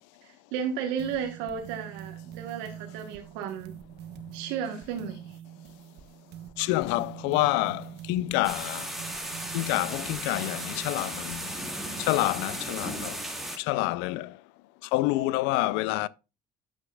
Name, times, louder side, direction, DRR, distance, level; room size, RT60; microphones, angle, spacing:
voice 1, 0.2-3.7 4.3-5.4, right 7 dB, 90° right, 1.3 m, -34 dB
sound 1, 1.0-11.7, right 10 dB, 65° right, 1.3 m, -45 dB
voice 2, 6.6-8.9 9.5-11.5 12.0-13.2 13.6-14.4 14.8-16.1, left 18 dB, 90° left, 0.5 m, -27 dB
sound 2, 8.4-13.6, right 1 dB, ahead, 3.6 m, -36 dB
11.0 x 8.3 x 2.3 m
supercardioid pair, 85°, 19 cm